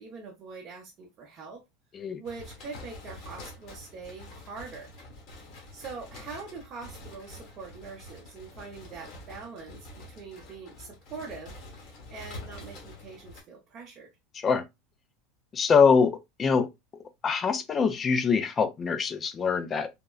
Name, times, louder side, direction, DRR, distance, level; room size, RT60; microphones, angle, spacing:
voice 1, 0.0-1.6 2.2-4.9 5.7-11.5 12.1-14.1, right 4 dB, 30° right, 0.7 m, -43 dB
sound 1, 2.2-13.4, left 2 dB, 50° left, 1.1 m, -46 dB
voice 2, 15.5-16.7 17.2-19.9, left 5 dB, 20° left, 0.3 m, -24 dB
3.5 x 2.0 x 2.2 m
supercardioid pair, 160°, 0 cm